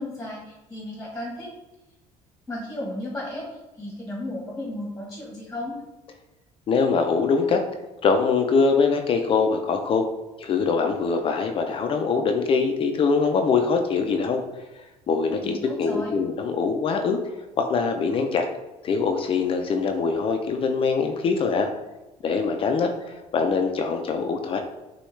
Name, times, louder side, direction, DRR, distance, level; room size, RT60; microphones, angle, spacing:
voice 1, 0.0-1.5 2.5-5.8 15.4-16.2, left 1 dB, 10° left, -2 dB, 1.2 m, -34 dB
voice 2, 6.7-7.6 8.0-10.1 10.4-14.4 14.8-17.2 17.6-18.5 18.8-21.7 22.2-24.6, left 5 dB, 45° left, 5 dB, 0.5 m, -23 dB
6.1 x 2.3 x 3.2 m, 1.0 s
cardioid pair, 105°, 13 cm